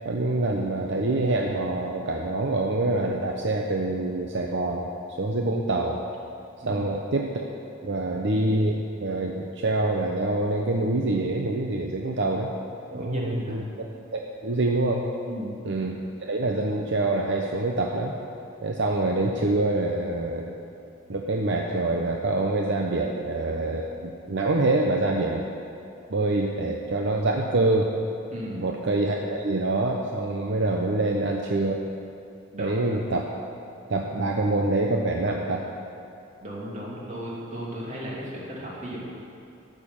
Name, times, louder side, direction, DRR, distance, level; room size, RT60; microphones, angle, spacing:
voice 1, 0.0-4.9 5.2-6.0 6.7-7.5 7.8-12.5 12.9-15.0 15.6-18.1 18.6-20.5 21.1-25.5 26.1-27.9 28.5-31.9 32.6-33.3 33.9-35.6, right 2 dB, 65° right, 1 dB, 0.8 m, -26 dB
voice 2, 12.9-13.6 15.3-15.5 28.3-28.6 32.5-32.9 36.4-39.0, equal, 40° right, -5 dB, 3.0 m, -35 dB
13.0 x 6.7 x 7.3 m, 2.7 s
head